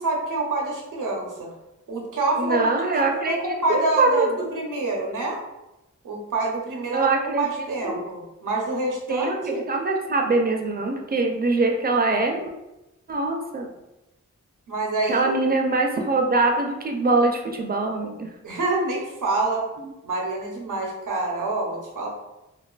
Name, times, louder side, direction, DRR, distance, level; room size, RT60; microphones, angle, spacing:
voice 1, 0.0-1.5 1.9-5.4 6.0-7.1 7.4-9.6 14.7-15.4 18.4-19.6 20.0-22.1, right 2 dB, 85° right, -1 dB, 0.7 m, -27 dB
voice 2, 2.4-3.4 3.7-4.5 6.9-7.5 7.8-8.0 9.1-12.5 13.1-13.7 15.1-18.3, right 3 dB, 30° right, 2 dB, 0.4 m, -23 dB
2.4 x 2.4 x 2.3 m, 0.96 s
wide cardioid pair, 65°, 30 cm